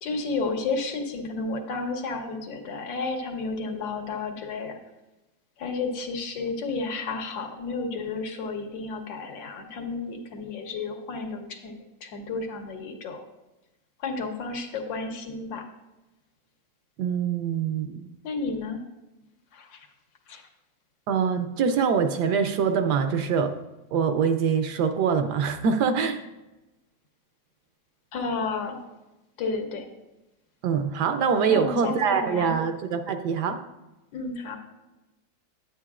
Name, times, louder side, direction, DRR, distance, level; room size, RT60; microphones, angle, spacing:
voice 1, 0.0-4.8 5.6-13.2 14.0-15.6 18.2-18.8 19.5-19.9 20.3-20.4 28.1-28.8 29.4-29.9 31.5-32.5 34.1-34.6, left 3 dB, 85° left, 3 dB, 1.7 m, -32 dB
voice 2, 17.0-18.1 21.1-23.6 23.9-26.2 30.6-33.6, right 6 dB, 70° right, 7 dB, 1.1 m, -24 dB
9.6 x 8.8 x 2.4 m, 1.0 s
omnidirectional pair, 2.0 m